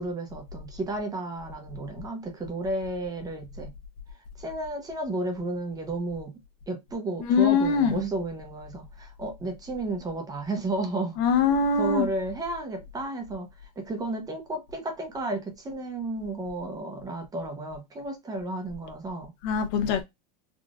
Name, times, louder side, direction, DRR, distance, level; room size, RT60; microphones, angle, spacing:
voice 1, 0.0-3.7 4.4-6.3 6.7-11.2 11.8-19.3, right 2 dB, 15° right, 0.8 m, -32 dB
voice 2, 7.2-8.0 11.2-12.1 19.4-20.0, left 5 dB, 60° left, 0.9 m, -22 dB
3.7 x 2.4 x 2.4 m
supercardioid pair, 135°, 21 cm